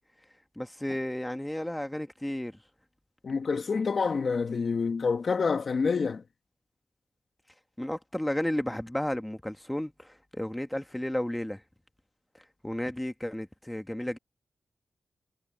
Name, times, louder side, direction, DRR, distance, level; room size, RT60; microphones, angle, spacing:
voice 1, 0.5-2.6 7.8-11.6 12.6-14.2, left 1 dB, 10° left, 1.6 m, -33 dB
voice 2, 3.2-6.2, left 5 dB, 60° left, 1.4 m, -27 dB
cardioid pair, 80°, 0 cm